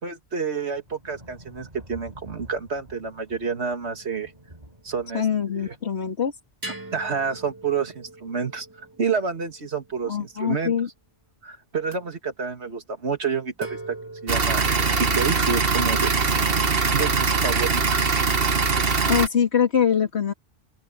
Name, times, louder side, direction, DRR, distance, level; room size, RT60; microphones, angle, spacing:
voice 1, 0.0-4.3 4.8-5.8 6.9-10.7 11.4-14.0 14.2-16.5 16.9-18.1, right 5 dB, 85° right, 2.3 m, -29 dB
sound 1, 0.7-6.2 7.4-7.7, right 1 dB, 40° right, 7.2 m, -48 dB
sound 2, 3.8-5.0 6.6-10.4 11.8-12.0 13.6-15.2, right 2 dB, 20° right, 2.4 m, -42 dB
voice 2, 5.1-6.3 10.1-10.9 19.1-20.3, left 8 dB, 85° left, 2.3 m, -23 dB
sound 3, 14.3-19.3, right 4 dB, 60° right, 1.6 m, -22 dB
omnidirectional pair, 1.1 m